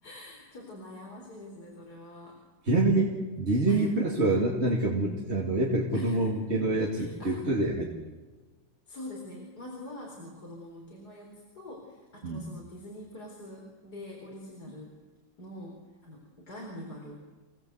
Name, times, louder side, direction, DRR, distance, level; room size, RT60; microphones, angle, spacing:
voice 1, 0.0-2.4 3.7-3.9 5.9-6.3 6.9-7.4 8.9-14.9 15.4-17.3, left 1 dB, 55° left, -2 dB, 4.7 m, -44 dB
voice 2, 2.7-7.9 12.2-12.4, right 2 dB, 35° right, -2 dB, 2.8 m, -26 dB
27.5 x 19.0 x 8.1 m, 1.2 s
omnidirectional pair, 2.0 m